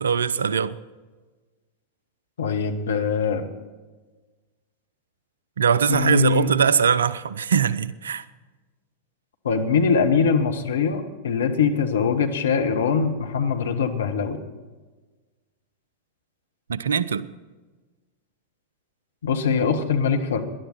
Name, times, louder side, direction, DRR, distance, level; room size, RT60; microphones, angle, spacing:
voice 1, 0.0-0.8 5.6-8.3 16.7-17.3, right 7 dB, 70° right, 19 dB, 0.5 m, -21 dB
voice 2, 2.4-3.5 5.9-6.5 9.4-14.4 19.2-20.4, left 6 dB, 65° left, 5 dB, 1.4 m, -22 dB
19.0 x 11.0 x 4.5 m, 1.3 s
figure-of-eight pair, 90°, 0 cm